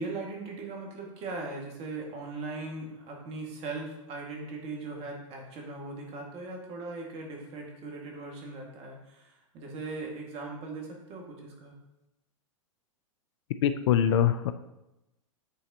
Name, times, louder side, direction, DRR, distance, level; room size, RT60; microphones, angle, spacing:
voice 1, 0.0-11.8, right 3 dB, 35° right, 0 dB, 1.8 m, -39 dB
voice 2, 13.6-14.5, left 9 dB, 60° left, 11 dB, 0.4 m, -23 dB
8.8 x 4.1 x 2.8 m, 0.94 s
hypercardioid pair, 110°, 17 cm